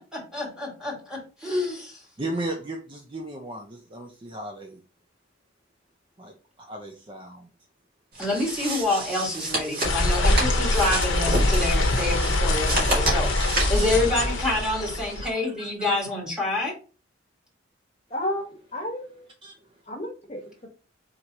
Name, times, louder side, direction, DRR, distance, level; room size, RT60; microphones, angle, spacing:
voice 1, 0.0-2.0 2.3-2.4 8.2-13.3 13.7-16.7, left 2 dB, 5° right, 1.8 m, -27 dB
voice 2, 2.2-4.8 6.2-7.5 15.2-15.7 19.4-19.5, right 2 dB, 25° right, 0.6 m, -36 dB
sound 1, 8.1-14.0, right 2 dB, 50° right, 1.9 m, -30 dB
sound 2, 9.8-15.3, left 2 dB, 85° left, 0.9 m, -23 dB
voice 3, 18.1-18.4 18.7-19.3 19.9-20.7, left 1 dB, 30° left, 1.3 m, -32 dB
4.7 x 3.8 x 2.9 m
head